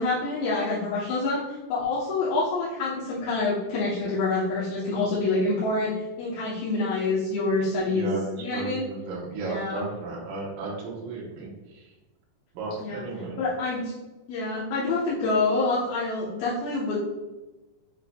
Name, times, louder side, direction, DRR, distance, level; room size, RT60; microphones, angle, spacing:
voice 1, 0.0-8.1 8.4-8.8 9.4-9.8 12.8-13.0 13.4-13.9 14.3-17.0, left 3 dB, 70° left, -8 dB, 2.6 m, -27 dB
voice 2, 7.9-11.9 12.5-13.4, right 3 dB, 65° right, -4 dB, 2.6 m, -34 dB
7.5 x 5.6 x 2.3 m, 1.1 s
omnidirectional pair, 4.8 m